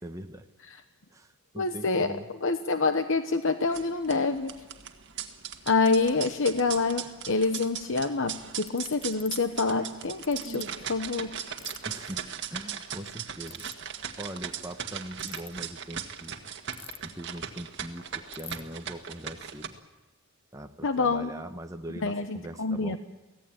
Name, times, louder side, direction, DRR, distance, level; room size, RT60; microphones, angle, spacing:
voice 1, 0.0-0.5 1.1-2.3 11.9-16.4 17.0-19.8 20.5-23.0, right 1 dB, 15° right, 5 dB, 1.0 m, -41 dB
voice 2, 1.6-4.5 5.7-11.4 20.8-21.3 22.0-23.0, left 3 dB, 65° left, 8 dB, 1.0 m, -27 dB
sound 1, 3.6-19.7, right 8 dB, 55° right, 1.8 m, -39 dB
Ratchet pawl, 8.7-9.3 10.2-10.6 11.6-11.8 13.4-13.7 15.1-15.5 16.7-17.2 17.5-17.6 17.8-17.9 18.3-18.6, left 8 dB, 25° left, 1.1 m, -44 dB
24.0 x 17.0 x 8.9 m, 1.1 s
head